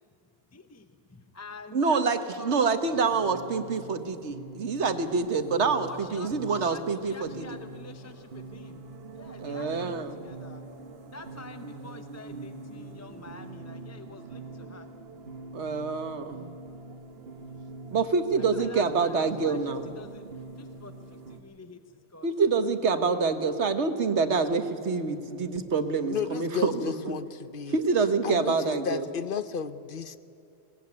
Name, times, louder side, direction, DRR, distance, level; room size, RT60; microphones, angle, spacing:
voice 1, 0.5-2.0 2.4-2.6 5.9-8.9 9.1-10.6 11.1-14.9 18.5-19.6 20.0-20.2 20.6-22.3, left 2 dB, 15° left, 8 dB, 0.8 m, -47 dB
voice 2, 1.7-7.5 9.4-10.2 15.5-16.5 17.9-19.9 22.2-27.1 27.7-29.1, right 4 dB, 85° right, 9 dB, 1.6 m, -26 dB
sound 1, 2.9-21.4, right 3 dB, 65° right, 1.4 m, -44 dB
voice 3, 26.1-27.8 28.2-30.2, left 6 dB, 55° left, 13 dB, 1.0 m, -33 dB
22.0 x 18.5 x 9.6 m, 2.8 s
omnidirectional pair, 1.1 m